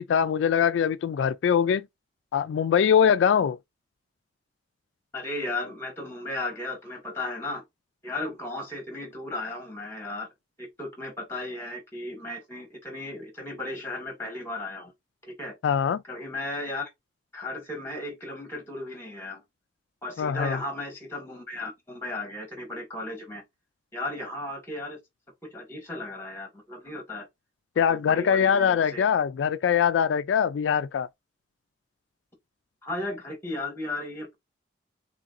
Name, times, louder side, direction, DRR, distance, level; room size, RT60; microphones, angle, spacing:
voice 1, 0.0-1.9 2.3-3.6 15.6-16.0 20.2-20.6 27.8-31.1, left 7 dB, 80° left, 0.3 m, -22 dB
voice 2, 5.1-7.6 8.0-10.3 10.6-14.9 15.2-15.6 16.1-16.9 17.3-19.4 20.0-23.4 23.9-25.0 25.4-27.3 27.9-29.0 32.8-34.3, left 2 dB, 15° left, 1.9 m, -35 dB
3.8 x 3.7 x 2.5 m
head